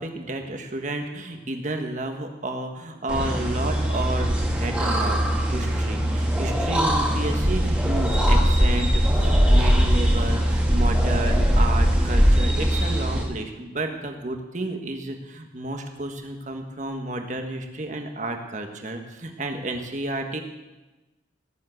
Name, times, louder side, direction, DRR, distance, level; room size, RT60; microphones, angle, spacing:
voice 1, 0.0-5.2 5.5-20.4, right 2 dB, 40° right, 4 dB, 1.6 m, -31 dB
sound 1, 3.1-13.2, equal, 5° right, 2.1 m, -21 dB
18.0 x 7.7 x 8.1 m, 1.1 s
head